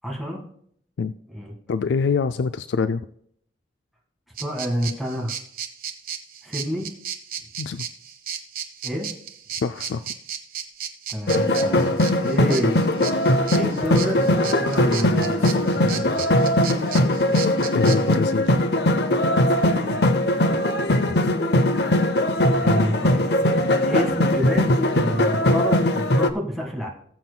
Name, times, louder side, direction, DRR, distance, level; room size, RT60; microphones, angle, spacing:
voice 1, 0.0-0.4 1.3-1.5 4.4-5.4 6.4-6.9 8.8-9.1 11.1-12.8 13.6-16.3 19.7-20.1 22.6-23.3 23.9-26.9, equal, ahead, -2 dB, 1.8 m, -28 dB
voice 2, 1.7-3.0 7.6-7.9 9.6-10.1 17.7-18.6 21.1-21.2, left 5 dB, 90° left, 12 dB, 0.4 m, -25 dB
sound 1, 4.4-18.2, right 8 dB, 50° right, 1.1 m, -34 dB
sound 2, 11.3-26.3, left 1 dB, 70° left, 0.8 m, -20 dB
19.5 x 7.5 x 2.3 m, 0.66 s
head